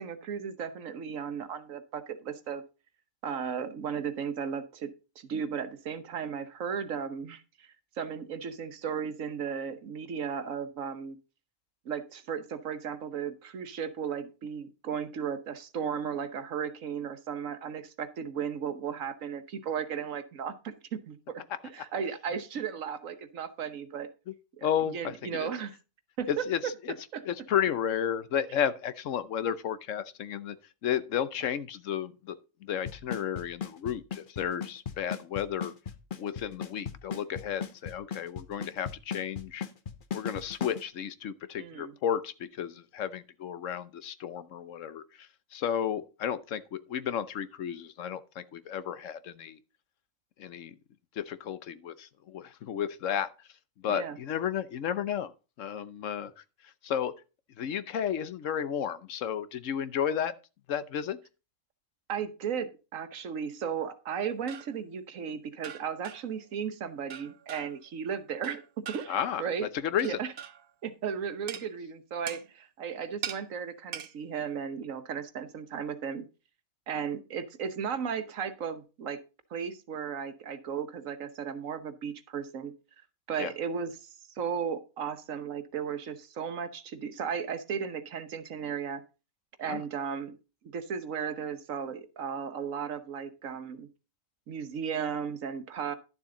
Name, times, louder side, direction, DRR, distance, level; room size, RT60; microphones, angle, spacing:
voice 1, 0.0-2.6 3.2-4.9 5.2-11.2 11.8-24.1 24.6-24.7 24.9-25.7 26.2-26.4 27.1-27.2 41.6-41.9 53.9-54.2 62.1-68.6 68.9-69.7 70.0-70.3 70.8-76.3 76.9-79.2 79.5-82.7 83.3-89.0 89.6-90.3 90.6-93.9 94.5-95.9, right 7 dB, 80° right, 1.4 m, -35 dB
voice 2, 24.6-25.5 26.3-26.9 27.2-30.6 30.8-35.7 36.2-39.7 40.1-49.6 50.4-50.8 51.1-53.5 53.8-55.3 55.6-57.1 57.6-60.3 60.7-61.2 69.1-70.2 83.4-83.5 89.6-89.8, left 9 dB, 70° left, 1.1 m, -33 dB
Drum kit / Snare drum / Bass drum, 32.9-40.8, left 7 dB, 45° left, 0.9 m, -36 dB
sound 1, 64.2-64.8 65.6-66.4 67.1-67.9 68.4-69.3 70.0-70.7 71.5-71.7 72.3-72.5 73.2-73.4 73.9-74.1, right 9 dB, 55° right, 0.7 m, -42 dB
11.5 x 7.2 x 3.8 m
omnidirectional pair, 1.4 m